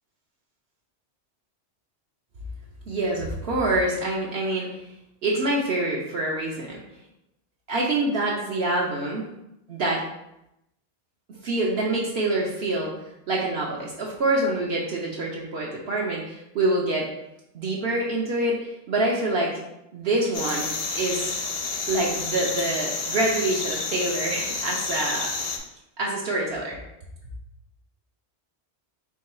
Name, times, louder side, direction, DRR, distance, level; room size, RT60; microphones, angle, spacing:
voice 1, 2.9-4.7 5.2-6.8 7.7-9.3 9.7-10.0 11.3-12.9 13.3-17.1 17.5-19.5 19.9-20.7 20.9-21.3 21.9-25.3 26.0-26.8, right 2 dB, 65° right, -3 dB, 0.9 m, -26 dB
sound 1, 20.3-25.6, left 4 dB, 50° left, 0.4 m, -30 dB
4.6 x 2.3 x 4.2 m, 0.84 s
omnidirectional pair, 1.1 m